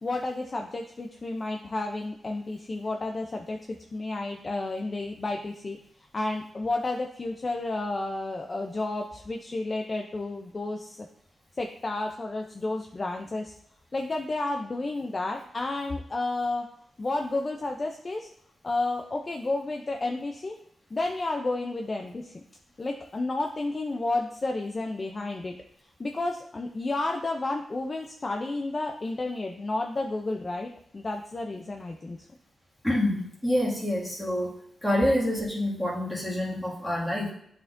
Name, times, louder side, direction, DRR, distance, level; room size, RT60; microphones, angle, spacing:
voice 1, 0.0-5.8 6.1-11.1 11.5-13.5 13.9-16.6 17.0-18.3 18.6-20.6 20.9-22.3 22.8-25.5 26.0-32.2, left 2 dB, 30° left, 2 dB, 0.5 m, -31 dB
voice 2, 32.8-34.5 34.8-37.3, left 1 dB, 5° left, -6 dB, 2.0 m, -27 dB
11.0 x 4.3 x 2.6 m, 0.71 s
wide cardioid pair, 155°, 0 cm